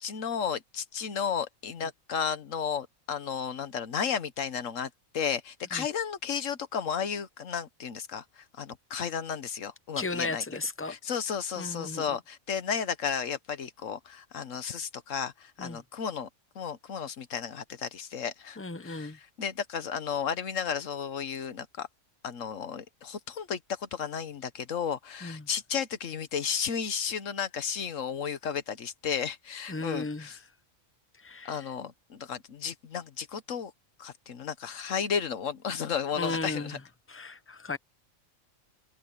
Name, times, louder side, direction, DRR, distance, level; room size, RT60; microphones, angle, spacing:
voice 1, 0.0-10.4 10.9-16.3 16.5-21.9 22.2-30.4 31.4-33.7 34.0-36.8, left 7 dB, 70° left, 1.5 m, -33 dB
voice 2, 10.0-11.0 11.6-12.0 15.6-15.8 18.6-19.2 25.2-25.4 29.7-30.3 31.2-31.6 36.2-36.8 37.1-37.8, left 3 dB, 15° left, 0.5 m, -35 dB
omnidirectional pair, 1.4 m